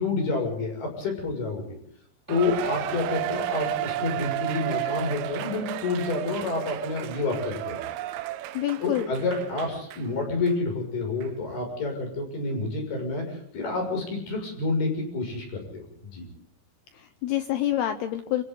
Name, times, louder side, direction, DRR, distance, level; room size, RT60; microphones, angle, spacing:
voice 1, 0.0-1.7 2.3-7.8 8.8-16.3, left 3 dB, 50° left, 3 dB, 8.3 m, -29 dB
Cheering, 2.3-10.1 10.5-10.6 11.2-11.3, right 14 dB, 80° right, 3.6 m, -33 dB
voice 2, 8.5-9.1 16.9-18.4, left 12 dB, 80° left, 9 dB, 2.4 m, -27 dB
30.0 x 25.0 x 3.9 m, 0.65 s
omnidirectional pair, 5.9 m